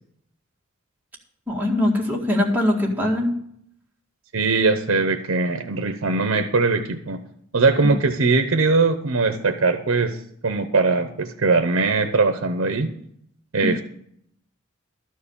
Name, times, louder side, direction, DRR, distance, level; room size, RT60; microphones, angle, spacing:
voice 1, 1.5-3.3 13.6-13.8, left 1 dB, 10° right, -2 dB, 1.9 m, -22 dB
voice 2, 4.3-7.2 7.5-10.2 10.4-12.9 13.5-13.8, right 3 dB, 65° right, 7 dB, 0.8 m, -20 dB
12.5 x 4.7 x 8.5 m, 0.70 s
head